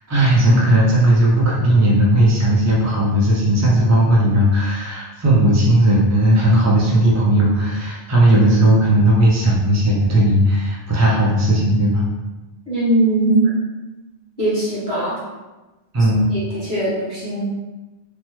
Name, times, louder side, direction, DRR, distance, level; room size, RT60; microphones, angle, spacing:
voice 1, 0.1-12.0 15.9-16.3, right 1 dB, 25° right, -5 dB, 0.3 m, -16 dB
voice 2, 12.7-13.5 14.4-15.2 16.3-17.4, right 2 dB, 50° right, -10 dB, 1.6 m, -20 dB
3.2 x 2.1 x 3.0 m, 1.1 s
omnidirectional pair, 1.1 m